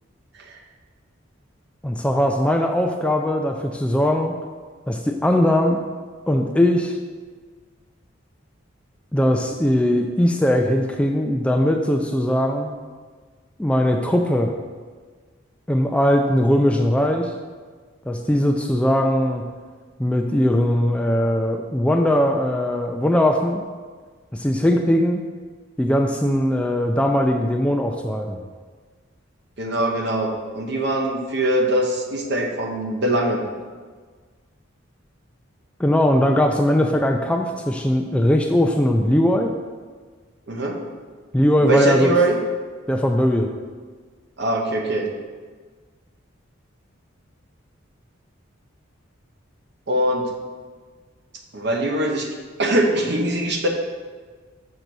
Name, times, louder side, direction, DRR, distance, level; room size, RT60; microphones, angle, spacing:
voice 1, 1.8-4.4 4.9-5.8 6.3-7.0 9.1-12.7 13.6-14.5 15.7-17.3 18.1-19.5 20.0-23.6 24.3-25.2 25.8-28.4 35.8-39.5 41.3-42.1 42.9-43.5, left 1 dB, 5° left, 3 dB, 0.3 m, -20 dB
voice 2, 29.6-33.5 40.5-40.8 41.6-42.4 44.4-45.1 49.9-50.3 51.5-52.3 52.6-53.7, right 1 dB, 55° right, 2 dB, 0.9 m, -22 dB
6.6 x 4.0 x 6.1 m, 1.5 s
head